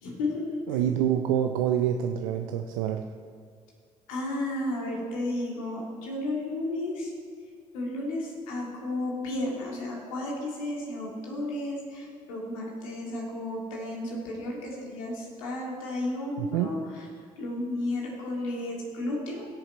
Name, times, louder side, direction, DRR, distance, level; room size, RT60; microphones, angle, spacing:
voice 1, 0.0-0.6 4.1-7.1 7.7-17.0 17.4-19.5, left 1 dB, 80° left, -2 dB, 2.1 m, -33 dB
voice 2, 0.7-3.1 16.4-16.8, right 10 dB, 80° right, 6 dB, 0.5 m, -27 dB
16.5 x 6.7 x 4.3 m, 2.1 s
hypercardioid pair, 45°, 17 cm